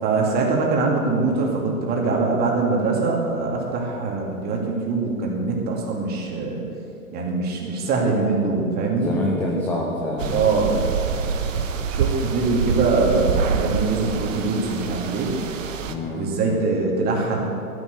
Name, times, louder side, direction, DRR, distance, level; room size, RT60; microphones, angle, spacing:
voice 1, 0.0-6.6 7.1-9.1 10.3-10.8 11.9-15.3 16.1-17.4, right 3 dB, 20° right, -1 dB, 2.6 m, -23 dB
voice 2, 8.9-10.5 15.9-16.3, left 1 dB, 5° left, -2 dB, 0.5 m, -26 dB
sound 1, 10.2-15.9, right 6 dB, 60° right, 1.3 m, -26 dB
12.5 x 10.5 x 8.2 m, 2.6 s
hypercardioid pair, 135°, 44 cm